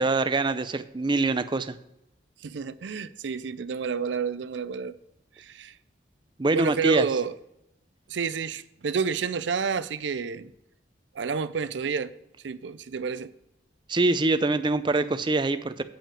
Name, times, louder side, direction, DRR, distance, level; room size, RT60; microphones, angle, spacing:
voice 1, 0.0-1.8 6.4-7.0 13.9-15.8, right 2 dB, 25° right, 0.5 m, -24 dB
voice 2, 2.4-5.0 5.4-5.8 6.5-7.4 8.1-10.5 11.1-12.1 12.4-13.3, right 6 dB, 90° right, 0.5 m, -30 dB
8.7 x 5.5 x 7.3 m
head